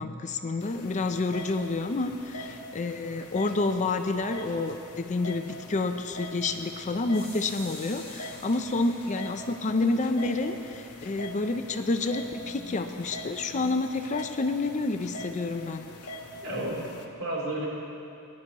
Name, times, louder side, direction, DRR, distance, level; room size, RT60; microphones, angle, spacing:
voice 1, 0.0-15.8, left 3 dB, 35° left, 7 dB, 0.5 m, -29 dB
sound 1, 0.6-17.0, left 1 dB, 90° left, 0.9 m, -44 dB
sound 2, 7.1-12.8, left 2 dB, 15° left, 3.3 m, -50 dB
voice 2, 16.4-17.7, right 1 dB, 65° right, -5 dB, 3.2 m, -32 dB
18.5 x 10.5 x 3.0 m, 2.7 s
head